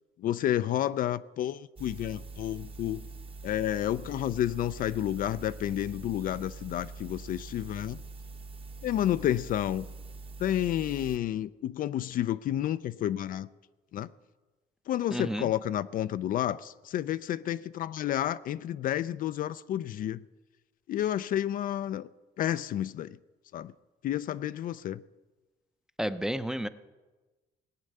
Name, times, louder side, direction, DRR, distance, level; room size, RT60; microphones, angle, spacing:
voice 1, 0.2-3.0 3.4-8.0 8.8-9.9 10.4-13.5 13.9-14.1 14.9-20.2 20.9-22.1 22.4-23.2 23.5-23.7 24.0-25.0, left 12 dB, 55° left, 0.4 m, -30 dB
sound 1, 1.8-11.2, right 3 dB, 35° right, 1.1 m, -44 dB
voice 2, 15.1-15.5 26.0-26.7, equal, 5° right, 0.6 m, -31 dB
19.0 x 8.4 x 6.6 m
cardioid pair, 110°, 17 cm